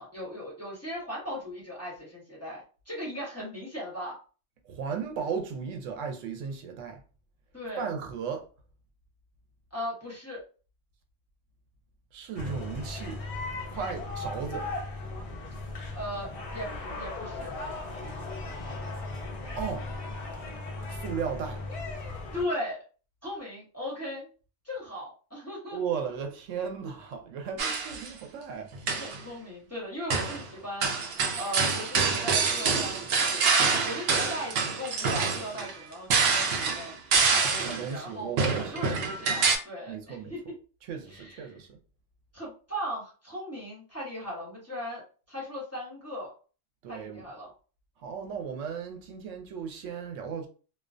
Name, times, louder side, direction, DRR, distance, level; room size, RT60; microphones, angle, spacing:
voice 1, 0.0-4.2 7.5-7.9 9.7-10.4 13.8-14.0 15.9-16.7 16.9-17.5 22.3-22.8 23.2-24.3 24.6-25.8 29.0-33.4 33.8-38.3 38.6-40.4 41.1-41.5 42.3-45.0 45.3-46.3 46.9-47.5, equal, 15° left, 0.9 m, -38 dB
voice 2, 4.6-7.0 7.8-8.5 12.1-13.2 13.6-14.7 19.5-19.8 20.9-21.6 25.7-28.7 37.6-38.7 39.9-40.3 40.8-41.8 46.8-47.2 48.0-50.5, right 6 dB, 90° right, 0.9 m, -35 dB
sound 1, 12.4-22.4, left 2 dB, 50° left, 0.4 m, -37 dB
sound 2, 27.6-28.1 28.7-29.2 30.1-30.4 30.8-37.9 38.4-39.6, right 5 dB, 65° right, 0.7 m, -26 dB
2.3 x 2.2 x 2.5 m
omnidirectional pair, 1.3 m